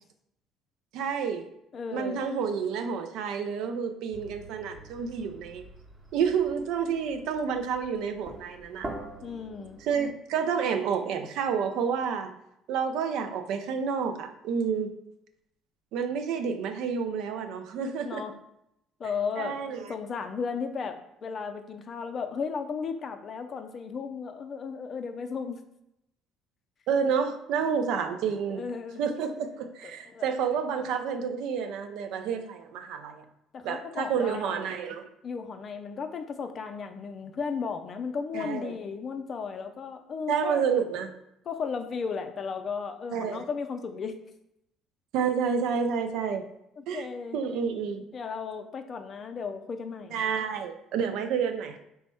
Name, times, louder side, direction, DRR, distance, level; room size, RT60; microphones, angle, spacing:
voice 1, 0.9-1.5 1.9-5.7 6.1-8.9 9.8-12.3 12.7-14.9 15.9-18.3 19.4-19.9 26.9-28.7 29.0-33.2 33.6-35.1 38.3-38.7 40.3-41.1 43.1-43.4 45.1-46.5 46.9-47.1 47.3-48.0 50.1-51.8, right 6 dB, 70° right, 7 dB, 0.4 m, -29 dB
voice 2, 1.7-2.2 9.2-9.8 18.1-18.3 19.0-25.6 27.6-27.8 28.5-29.0 29.8-30.3 33.5-34.8 35.2-40.7 41.5-44.1 46.8-47.4 48.1-50.2, left 5 dB, 45° left, 7 dB, 0.4 m, -35 dB
sound 1, 4.1-10.1, right 2 dB, 30° right, 0.9 m, -45 dB
3.4 x 2.1 x 4.2 m, 0.81 s
hypercardioid pair, 60°, 0 cm